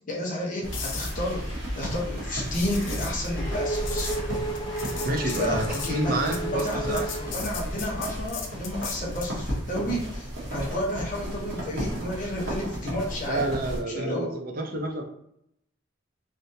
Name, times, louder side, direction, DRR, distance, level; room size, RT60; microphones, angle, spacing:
voice 1, 0.1-1.5 1.7-4.1 5.2-13.5 13.9-14.3, left 1 dB, 45° left, -3 dB, 1.0 m, -31 dB
sound 1, 0.6-13.8, equal, 70° right, 1.2 m, -34 dB
sound 2, 0.7-9.4 13.6-13.8, left 5 dB, 75° left, 0.6 m, -39 dB
Race car auto racing / Accelerating revving vroom, 2.8-8.0, right 2 dB, 25° left, 0.4 m, -34 dB
voice 2, 5.0-7.0 13.3-15.1, right 2 dB, 50° right, 3 dB, 0.5 m, -29 dB
3.4 x 2.6 x 2.7 m, 0.72 s
head